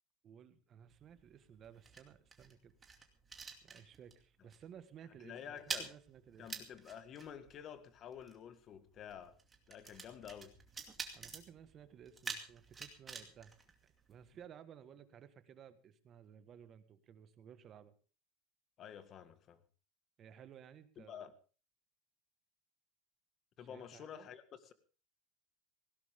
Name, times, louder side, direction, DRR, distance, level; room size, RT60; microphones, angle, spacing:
voice 1, 0.2-2.7 3.6-6.5 11.1-13.5 14.1-17.9 20.2-21.3 23.6-24.3, right 8 dB, 30° right, 1.6 m, -57 dB
sound 1, 0.9-4.2 4.5-4.8 5.0-14.4, right 4 dB, 15° right, 2.5 m, -48 dB
voice 2, 5.2-5.9 6.4-9.4 9.7-10.5 18.8-19.6 21.0-21.3 23.6-24.4, left 8 dB, 35° left, 1.7 m, -50 dB
18.5 x 17.0 x 3.7 m
supercardioid pair, 150°, 0 cm